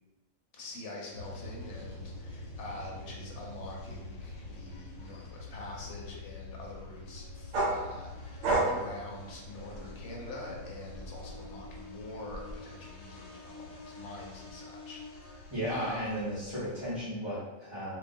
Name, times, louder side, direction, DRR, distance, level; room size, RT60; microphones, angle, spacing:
voice 1, 0.5-16.1, left 2 dB, 65° left, -2 dB, 0.9 m, -45 dB
sound 1, 1.1-17.0, left 2 dB, 90° left, 1.1 m, -46 dB
sound 2, 7.5-10.2 10.6-12.5, right 2 dB, 70° right, 0.9 m, -32 dB
voice 2, 15.5-18.0, equal, 30° right, -11 dB, 0.5 m, -35 dB
2.3 x 2.2 x 2.5 m, 1.1 s
omnidirectional pair, 1.3 m